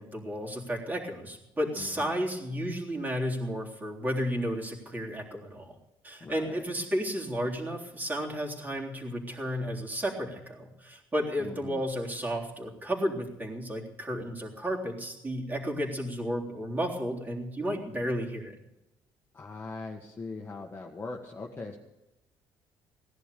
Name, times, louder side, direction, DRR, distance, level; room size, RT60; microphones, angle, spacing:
voice 1, 0.0-5.7 6.0-18.5, equal, 20° right, -1 dB, 3.6 m, -33 dB
voice 2, 1.8-2.2 6.2-6.6 11.4-11.8 19.3-21.8, left 3 dB, 25° left, 0 dB, 1.6 m, -41 dB
18.0 x 11.0 x 6.8 m, 0.93 s
cardioid pair, 115°, 9 cm